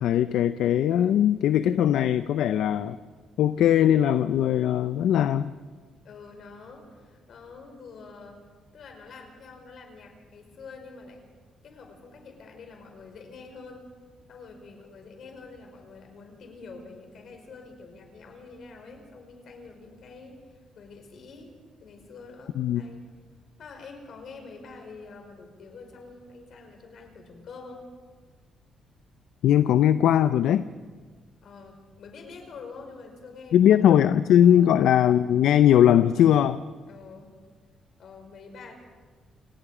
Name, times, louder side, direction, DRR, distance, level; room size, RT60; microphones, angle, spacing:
voice 1, 0.0-3.0 3.4-5.5 22.6-22.8 29.4-30.7 33.5-36.6, left 10 dB, 80° left, 12 dB, 0.5 m, -20 dB
voice 2, 6.0-8.4 8.7-11.2 11.6-13.9 14.3-23.1 23.6-27.8 31.4-33.8 34.4-34.8 36.9-37.3 38.0-38.7, left 4 dB, 60° left, 4 dB, 5.1 m, -46 dB
28.5 x 18.5 x 5.0 m, 1.5 s
cardioid pair, 105°, 0 cm